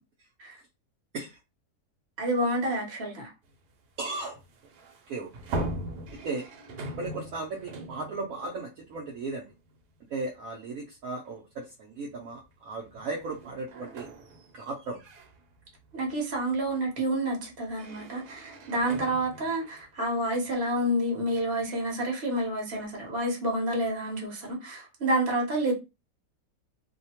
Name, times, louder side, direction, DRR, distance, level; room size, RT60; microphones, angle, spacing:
voice 1, 2.2-3.3 15.9-25.7, right 1 dB, 40° right, 1.1 m, -29 dB
sound 1, 3.4-9.8 10.2-10.4 11.5-11.6 12.1-21.8, right 1 dB, 85° right, 1.2 m, -41 dB
voice 2, 4.0-4.4 5.1-5.3 6.1-6.5 7.0-9.5 10.1-14.1 14.5-15.0, right 3 dB, 70° right, 1.0 m, -36 dB
2.8 x 2.2 x 2.8 m
omnidirectional pair, 1.7 m